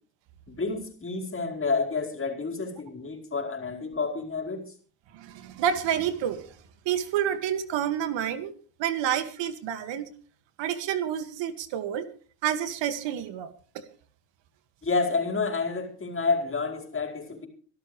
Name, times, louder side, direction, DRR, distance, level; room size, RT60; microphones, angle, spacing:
voice 1, 0.5-4.6 14.8-17.5, left 4 dB, 25° left, 4.7 m, -29 dB
voice 2, 5.1-6.6 6.9-8.5 8.8-10.1 10.6-12.1 12.4-13.8, right 9 dB, 65° right, 2.1 m, -29 dB
25.0 x 12.5 x 3.3 m
supercardioid pair, 75°, 46 cm